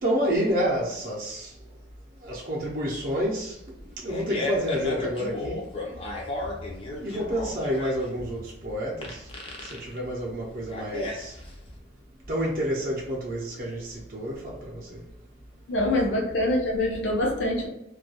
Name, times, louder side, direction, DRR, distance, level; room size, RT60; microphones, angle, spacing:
voice 1, 0.0-1.5 2.2-3.6 4.0-5.6 7.0-9.2 9.7-11.3 12.3-15.0, equal, 50° right, -4 dB, 0.5 m, -29 dB
Fart, 3.8-11.7, left 2 dB, 30° left, 0.5 m, -34 dB
voice 2, 15.7-17.7, left 1 dB, 80° left, -2 dB, 0.6 m, -25 dB
2.3 x 2.2 x 2.7 m, 0.85 s
head